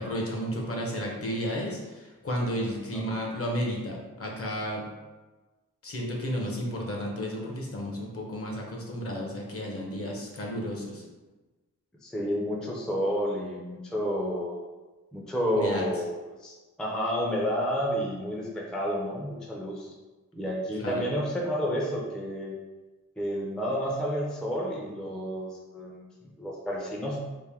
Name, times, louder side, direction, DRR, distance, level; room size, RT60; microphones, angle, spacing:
voice 1, 0.0-4.9 5.8-11.0 15.6-15.8 20.8-21.0, equal, 45° left, -1 dB, 0.7 m, -32 dB
voice 2, 12.0-14.6 15.1-16.1 16.4-19.9 20.3-22.6 23.2-27.2, equal, ahead, -2 dB, 0.4 m, -30 dB
3.5 x 2.5 x 3.4 m, 1.2 s
wide cardioid pair, 160°, 32 cm